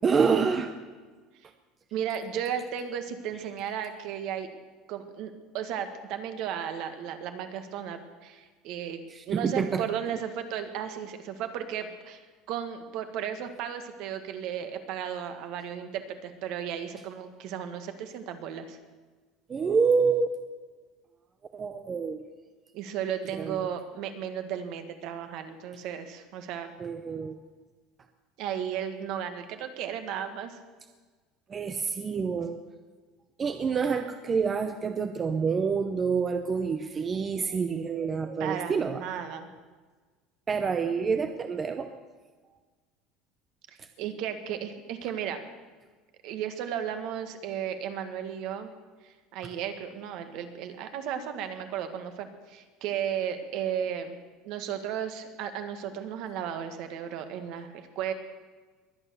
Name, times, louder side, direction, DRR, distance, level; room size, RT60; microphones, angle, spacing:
voice 1, 0.0-0.7 9.1-9.8 19.5-20.3 21.5-22.2 23.4-23.6 26.8-27.4 31.5-32.6 33.4-39.0 40.5-41.9 43.8-43.9, right 5 dB, 20° right, 8 dB, 0.7 m, -27 dB
voice 2, 1.9-4.5 4.9-12.2 12.5-18.8 22.7-26.7 28.4-30.6 38.4-39.5 44.0-45.4 46.2-48.7 49.0-54.2 54.4-58.1, right 9 dB, 55° right, 8 dB, 1.6 m, -34 dB
22.0 x 9.1 x 6.9 m, 1.4 s
cardioid pair, 165°, 0 cm